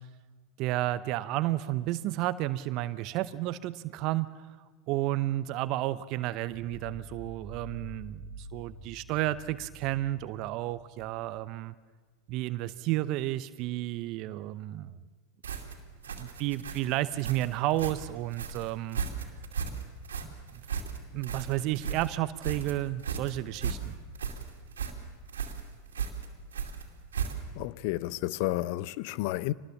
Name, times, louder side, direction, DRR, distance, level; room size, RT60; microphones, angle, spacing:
voice 1, 0.6-4.4 4.9-11.7 12.3-14.9 16.2-19.0 20.2-20.3 21.1-24.0, right 15 dB, 50° right, 0.8 m, -32 dB
sound 1, 6.5-11.3, right 1 dB, 30° left, 7.3 m, -47 dB
sound 2, 15.4-27.7, right 6 dB, 85° right, 2.5 m, -36 dB
voice 2, 27.6-29.5, left 17 dB, 60° left, 0.7 m, -31 dB
25.0 x 19.5 x 7.2 m
hypercardioid pair, 90°, 0 cm